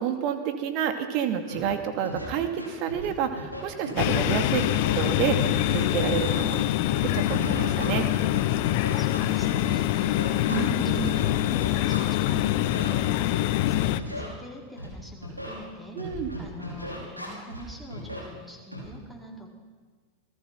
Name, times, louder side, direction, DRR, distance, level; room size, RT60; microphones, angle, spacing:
voice 1, 0.0-6.6 7.0-8.1 10.5-10.7 10.9-11.1 16.0-16.3, right 8 dB, 45° right, 7 dB, 2.5 m, -29 dB
Scratching (performance technique), 1.5-1.6 2.0-2.3 2.6-3.1 3.4-4.4 4.6-7.0 7.3-12.3 12.6-12.9 13.3-14.3 14.8-14.9 15.2-15.6 16.0-17.6 17.9-18.2 18.7-18.9, equal, 85° right, 5.6 m, -37 dB
sound 1, 4.0-14.0, left 15 dB, 50° left, 0.8 m, -25 dB
voice 2, 8.4-16.0 16.4-19.5, left 1 dB, 5° right, 1 dB, 4.4 m, -44 dB
27.5 x 19.5 x 5.9 m, 1.5 s
figure-of-eight pair, 90°, 0 cm